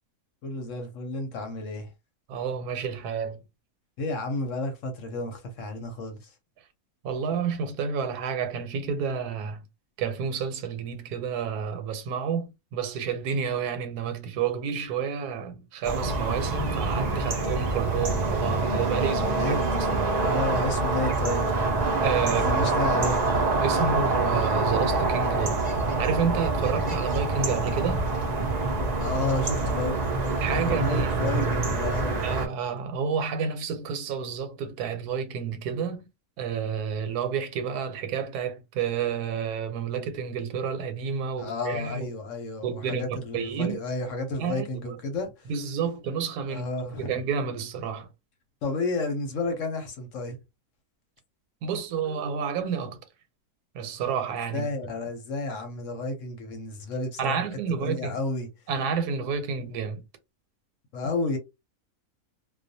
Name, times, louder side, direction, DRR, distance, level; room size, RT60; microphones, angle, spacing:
voice 1, 0.4-1.9 4.0-6.3 19.2-21.6 22.2-23.4 29.0-30.0 30.5-32.2 41.4-45.5 46.5-47.1 48.6-50.4 54.5-57.4 57.8-58.5 60.9-61.4, left 2 dB, 65° left, 0.9 m, -31 dB
voice 2, 2.3-3.4 7.0-9.6 10.0-20.3 22.0-22.7 23.6-25.7 26.0-28.1 30.4-31.2 32.2-36.1 36.4-42.1 42.6-43.8 44.4-45.0 45.5-46.7 47.0-48.1 51.6-53.0 53.7-54.7 57.2-58.2 58.7-60.0, right 6 dB, 90° right, 1.1 m, -30 dB
sound 1, 15.8-32.5, right 3 dB, 75° right, 0.3 m, -26 dB
2.3 x 2.2 x 2.6 m
omnidirectional pair, 1.6 m